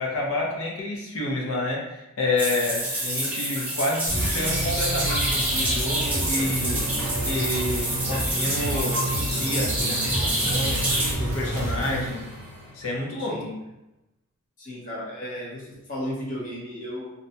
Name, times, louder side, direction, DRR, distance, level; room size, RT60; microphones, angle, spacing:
voice 1, 0.0-6.8 7.2-10.9 11.2-12.3 12.7-13.5, left 2 dB, 70° left, -3 dB, 0.7 m, -29 dB
sound 1, 2.4-11.1, right 1 dB, 10° right, 0.7 m, -27 dB
sound 2, 4.1-13.3, equal, 20° left, 1.0 m, -35 dB
sound 3, 4.1-12.1, right 2 dB, 70° right, 0.6 m, -31 dB
voice 2, 14.6-17.1, equal, 40° left, -6 dB, 0.8 m, -34 dB
2.5 x 2.2 x 2.6 m, 0.94 s
head